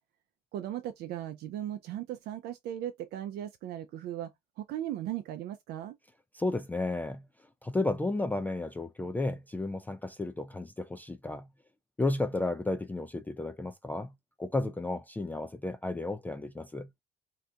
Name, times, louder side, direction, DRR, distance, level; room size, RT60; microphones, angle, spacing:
voice 1, 0.5-6.0, right 12 dB, 75° right, 0.4 m, -37 dB
voice 2, 6.3-7.2 7.6-11.5 12.0-14.1 14.4-16.9, left 2 dB, 10° left, 0.3 m, -33 dB
2.7 x 2.4 x 3.3 m
cardioid pair, 110°, 17 cm